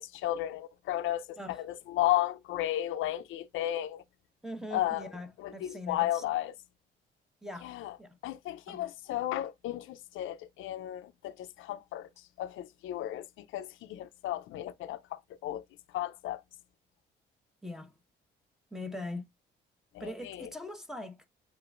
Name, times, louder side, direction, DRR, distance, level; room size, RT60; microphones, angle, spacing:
voice 1, 0.0-4.0 4.7-5.1 5.4-6.5 7.6-8.0 8.2-12.1 12.4-15.6 15.9-16.4 19.9-20.5, left 14 dB, 85° left, 0.5 m, -34 dB
voice 2, 4.4-6.2 7.4-7.7 8.0-8.2 8.7-8.9 17.6-17.9 18.7-19.3 20.0-21.3, left 1 dB, ahead, 1.0 m, -41 dB
7.7 x 2.6 x 2.4 m
cardioid pair, 90°, 20 cm